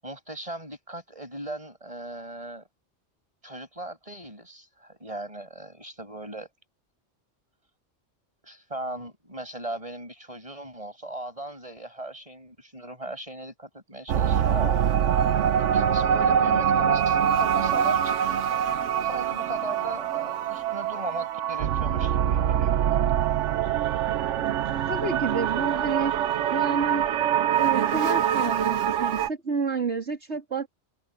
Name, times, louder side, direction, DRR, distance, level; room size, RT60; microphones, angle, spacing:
voice 1, 0.0-2.7 3.4-6.5 8.4-14.8 15.6-18.4 19.0-22.9, right 1 dB, 30° right, 7.6 m, -38 dB
sound 1, 14.1-29.3, right 9 dB, 85° right, 1.1 m, -24 dB
voice 2, 24.9-26.1 26.5-27.1 27.5-30.7, right 4 dB, 65° right, 3.3 m, -29 dB
omnidirectional pair, 1.2 m